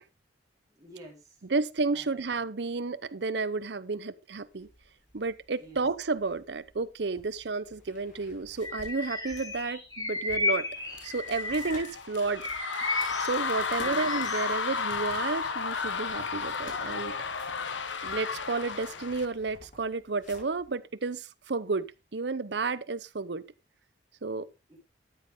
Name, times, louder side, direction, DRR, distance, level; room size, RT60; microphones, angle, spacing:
voice 1, 0.7-1.4 1.9-2.3 5.6-5.8 13.7-14.1 24.7-24.8, right 1 dB, 20° right, 3.8 m, -50 dB
voice 2, 1.5-4.7 5.1-10.7 11.0-12.5 13.2-17.1 18.0-23.4 24.2-24.5, right 3 dB, 65° right, 0.7 m, -31 dB
sound 1, 4.4-20.7, left 1 dB, 50° left, 5.2 m, -54 dB
Bird vocalization bird call bird song, 8.6-11.9 12.3-14.6, left 3 dB, 20° left, 3.3 m, -34 dB
sound 2, 10.9-19.3, left 5 dB, 85° left, 1.1 m, -33 dB
13.0 x 7.7 x 3.6 m
head